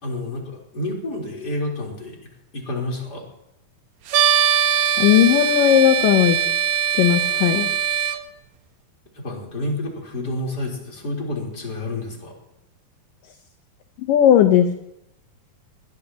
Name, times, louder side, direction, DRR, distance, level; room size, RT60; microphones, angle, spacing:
voice 1, 0.0-2.2 2.5-3.3 9.1-12.4, left 1 dB, 25° left, -2 dB, 4.2 m, -29 dB
sound 1, 4.1-8.2, right 8 dB, 70° right, 1.9 m, -21 dB
voice 2, 5.0-6.4 7.0-7.7 14.1-14.7, left 10 dB, 70° left, 5 dB, 2.4 m, -16 dB
21.0 x 21.0 x 3.0 m, 0.83 s
omnidirectional pair, 4.5 m